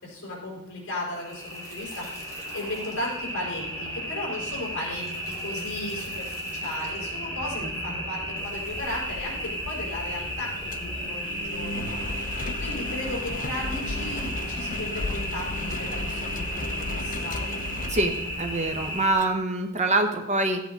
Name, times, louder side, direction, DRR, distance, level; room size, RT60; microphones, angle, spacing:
voice 1, 0.0-17.4, left 1 dB, 60° left, -3 dB, 4.6 m, -36 dB
sound 1, 1.1-19.1, equal, 15° left, 2.7 m, -34 dB
Engine, 8.4-19.2, left 2 dB, 40° left, 0.8 m, -35 dB
voice 2, 17.9-20.6, right 2 dB, 30° right, 4 dB, 1.2 m, -25 dB
14.0 x 8.5 x 4.0 m, 0.92 s
head